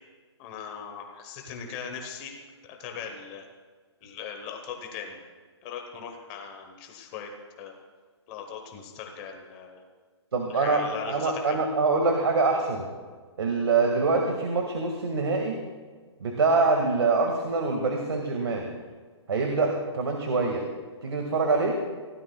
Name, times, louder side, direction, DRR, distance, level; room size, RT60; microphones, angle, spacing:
voice 1, 0.4-2.4 2.7-3.5 4.0-5.2 5.6-7.3 7.6-7.8 8.3-9.8 10.5-11.7, left 7 dB, 15° left, 4 dB, 1.0 m, -39 dB
voice 2, 10.3-12.8 13.4-15.6 16.2-18.7 19.3-20.7 21.0-21.8, right 3 dB, 60° right, 2 dB, 1.9 m, -25 dB
24.5 x 16.0 x 2.3 m, 1.5 s
hypercardioid pair, 180°, 15 cm